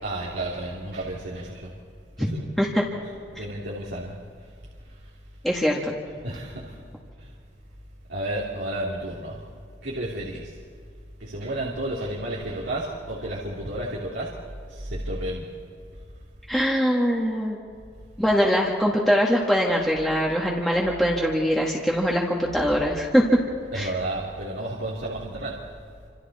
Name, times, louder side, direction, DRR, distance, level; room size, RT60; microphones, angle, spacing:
voice 1, 0.0-1.7 2.2-2.4 3.3-4.2 6.2-6.8 7.2-7.3 8.1-9.4 9.8-10.5 11.2-14.4 14.7-15.5 22.6-22.7 23.7-25.6, right 1 dB, 90° right, -5 dB, 3.1 m, -32 dB
voice 2, 5.4-5.9 16.5-17.6 18.2-23.2 23.7-23.9, equal, ahead, -3 dB, 1.8 m, -22 dB
28.5 x 26.5 x 4.3 m, 2.3 s
head